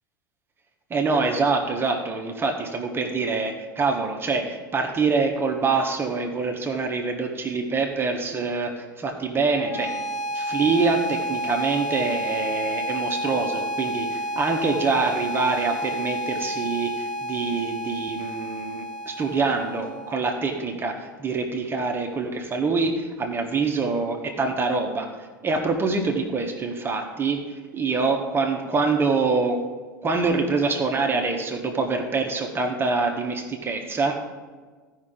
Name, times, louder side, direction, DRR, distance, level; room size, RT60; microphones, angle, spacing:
voice 1, 0.9-10.0 10.3-25.1 25.4-29.6 30.0-34.2, right 4 dB, 20° right, 3 dB, 1.3 m, -25 dB
sound 1, 9.5-20.5, equal, 50° left, 1.4 m, -30 dB
15.5 x 5.6 x 3.8 m, 1.4 s
figure-of-eight pair, 80°, 11 cm